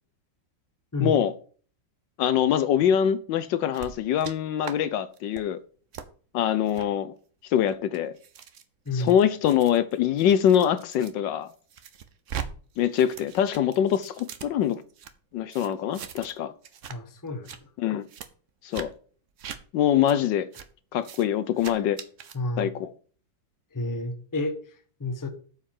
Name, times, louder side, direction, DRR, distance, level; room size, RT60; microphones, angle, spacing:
voice 1, 1.0-1.3 2.2-5.6 6.3-7.1 7.5-8.1 8.9-11.5 12.8-14.8 15.3-16.5 17.8-18.0 18.6-18.9 19.7-20.5 20.9-22.0 22.6-22.9, left 9 dB, 75° left, 1.3 m, -24 dB
sound 1, 3.7-4.3 4.6-4.8 5.1-5.4 5.9-6.1 6.7-6.9 7.5-11.1 11.5-12.5 12.7-15.1 15.5-16.4 16.6-17.0 17.3-17.6 18.1-18.3 18.7-18.9 19.4-19.6 20.1-20.2 20.5-20.7 21.0-21.2 21.6-22.4, right 8 dB, 55° right, 0.9 m, -40 dB
voice 2, 16.9-17.7 21.6-21.8 22.3-22.7 23.7-25.3, left 2 dB, 15° left, 0.9 m, -31 dB
8.7 x 4.8 x 7.4 m
omnidirectional pair, 2.1 m